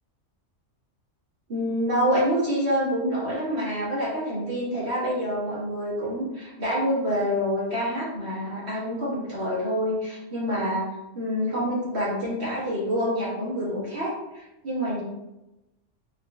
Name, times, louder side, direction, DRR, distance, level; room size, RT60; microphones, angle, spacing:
voice 1, 1.5-10.9 11.1-15.0, equal, 55° right, -7 dB, 1.7 m, -27 dB
4.4 x 2.8 x 2.4 m, 0.96 s
omnidirectional pair, 1.3 m